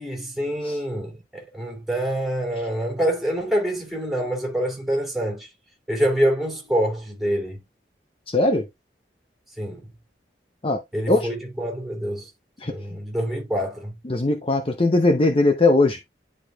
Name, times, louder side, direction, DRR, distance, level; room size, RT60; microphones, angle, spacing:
voice 1, 0.0-5.5 5.9-7.6 9.6-9.9 10.9-12.3 12.6-13.9, right 1 dB, ahead, 2.7 m, -26 dB
voice 2, 8.3-8.6 10.6-10.8 11.1-11.3 12.6-12.7 14.0-16.1, left 2 dB, 30° left, 0.7 m, -20 dB
10.5 x 4.9 x 2.3 m
head